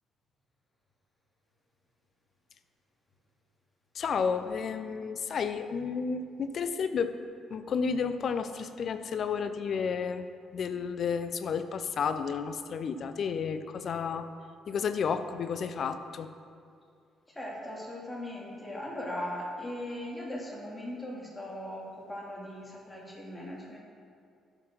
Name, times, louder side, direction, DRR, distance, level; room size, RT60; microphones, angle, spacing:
voice 1, 3.9-7.2 7.5-10.3 10.5-14.3 14.7-16.3, left 6 dB, 50° left, 10 dB, 0.6 m, -31 dB
voice 2, 17.3-23.8, left 1 dB, 15° left, -3 dB, 2.7 m, -39 dB
11.5 x 6.0 x 6.0 m, 2.3 s
figure-of-eight pair, 45°, 0 cm